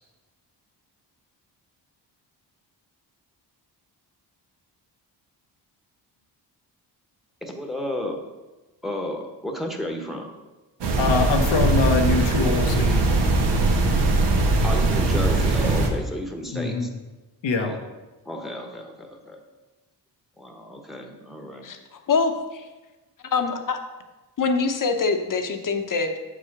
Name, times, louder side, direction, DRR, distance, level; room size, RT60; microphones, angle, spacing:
voice 1, 7.4-8.2 8.8-10.3 14.6-16.9 17.6-17.8 18.3-19.4 20.4-21.7, left 1 dB, ahead, 3 dB, 1.0 m, -32 dB
sound 1, 10.8-15.9, right 2 dB, 75° right, 1.2 m, -21 dB
voice 2, 11.0-13.0 16.5-16.9 17.4-17.7, left 4 dB, 90° left, 3 dB, 1.0 m, -23 dB
voice 3, 21.6-22.7 23.2-23.8 24.4-26.2, left 4 dB, 50° left, 6 dB, 0.9 m, -24 dB
6.9 x 4.9 x 5.9 m, 1.1 s
cardioid pair, 105°, 43 cm